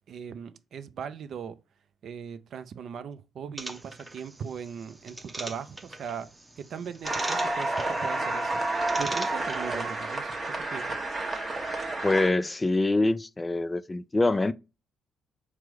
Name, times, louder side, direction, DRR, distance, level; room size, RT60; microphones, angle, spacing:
voice 1, 0.1-1.6 2.0-6.3 6.6-8.6 9.0-11.0, right 7 dB, 60° right, 0.4 m, -39 dB
sound 1, 3.6-10.0, right 1 dB, 20° right, 0.8 m, -41 dB
sound 2, 7.0-12.3, right 2 dB, 35° right, 1.2 m, -30 dB
voice 2, 12.0-14.5, left 2 dB, 25° left, 0.3 m, -25 dB
4.5 x 2.0 x 4.5 m
hypercardioid pair, 45°, 0 cm